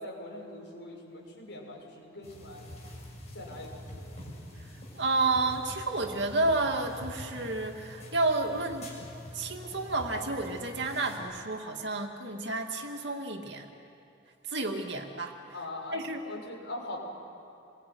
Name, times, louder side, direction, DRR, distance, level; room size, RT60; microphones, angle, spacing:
voice 1, 0.0-2.7 3.3-4.2 15.5-17.0, left 1 dB, 60° left, -1 dB, 7.3 m, -42 dB
sound 1, 2.2-11.2, left 1 dB, 35° left, 7.1 m, -45 dB
voice 2, 5.0-8.9 9.3-13.7 14.5-15.4 15.9-16.2, right 2 dB, 60° right, 3 dB, 2.5 m, -30 dB
28.5 x 22.0 x 9.5 m, 2.8 s
head